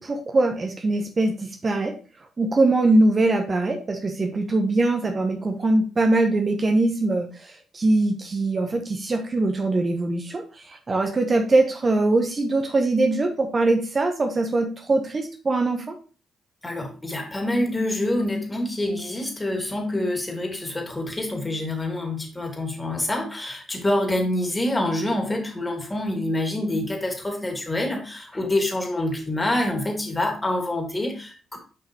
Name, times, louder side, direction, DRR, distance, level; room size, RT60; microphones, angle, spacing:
voice 1, 0.0-2.0 2.4-16.0, right 2 dB, 35° right, 4 dB, 1.0 m, -22 dB
voice 2, 16.6-31.6, left 1 dB, 20° left, 2 dB, 2.6 m, -26 dB
7.2 x 5.6 x 3.0 m, 0.36 s
hypercardioid pair, 40°, 0 cm